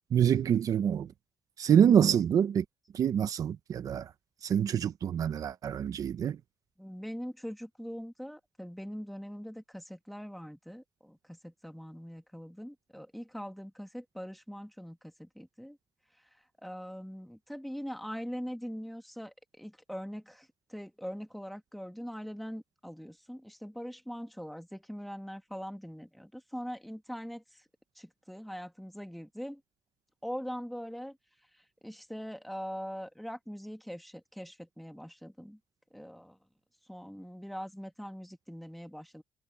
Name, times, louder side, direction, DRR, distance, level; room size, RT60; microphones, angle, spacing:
voice 1, 0.1-1.1 1.6-2.6 2.9-4.1 4.4-6.4, right 8 dB, 55° right, 0.8 m, -26 dB
voice 2, 6.8-15.8 16.2-27.7 28.0-29.6 30.2-31.2 31.5-35.6 35.9-36.4 36.9-39.2, equal, ahead, 2.0 m, -42 dB
cardioid pair, 120°, 7 cm